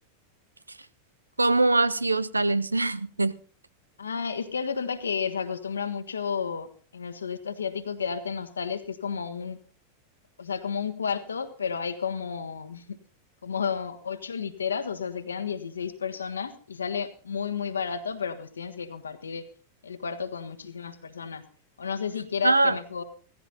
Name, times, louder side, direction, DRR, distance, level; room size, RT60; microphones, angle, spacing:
voice 1, 1.4-3.3 22.4-22.8, right 2 dB, 80° right, 0.6 m, -22 dB
voice 2, 4.0-9.6 10.4-13.0 13.4-19.5 19.8-21.4 21.8-23.0, left 6 dB, 70° left, 1.5 m, -32 dB
17.0 x 15.0 x 4.1 m
figure-of-eight pair, 90°, 0 cm